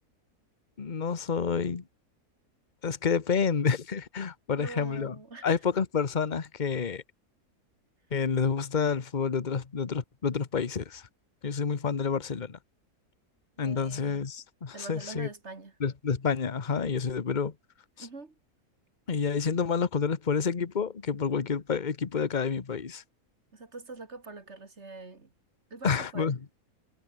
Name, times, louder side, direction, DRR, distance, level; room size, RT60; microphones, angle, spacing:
voice 1, 0.8-1.8 2.8-5.1 5.4-7.0 8.1-11.1 11.4-12.6 13.6-15.3 15.8-17.5 18.0-18.1 19.1-23.0 25.8-26.4, left 6 dB, 30° left, 1.2 m, -29 dB
voice 2, 4.6-5.5 13.6-14.2 14.7-15.8 18.0-18.3 23.5-25.3 25.7-26.4, right 3 dB, 45° right, 2.7 m, -44 dB
omnidirectional pair, 1.7 m